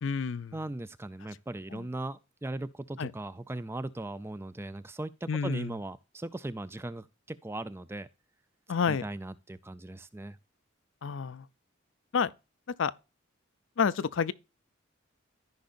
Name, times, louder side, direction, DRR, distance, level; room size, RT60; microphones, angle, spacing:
voice 1, 0.0-0.5 1.7-1.8 3.0-3.1 5.3-5.7 8.7-9.0 11.0-11.4 12.1-12.3 12.8-12.9 13.8-14.3, left 6 dB, 65° left, 0.5 m, -29 dB
voice 2, 0.5-8.1 8.9-10.4, right 2 dB, 10° right, 0.4 m, -38 dB
14.0 x 5.3 x 2.5 m
head